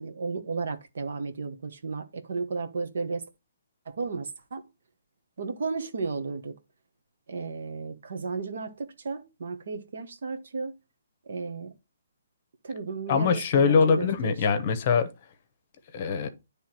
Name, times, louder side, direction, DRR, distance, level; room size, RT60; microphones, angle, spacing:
voice 1, 0.0-3.2 3.8-4.6 5.4-6.5 7.3-10.7 11.3-11.7 12.6-14.3, right 4 dB, 65° right, 1.3 m, -34 dB
voice 2, 13.1-15.1 15.9-16.3, left 5 dB, 35° left, 1.0 m, -23 dB
9.7 x 3.4 x 4.4 m
hypercardioid pair, 165°, 0 cm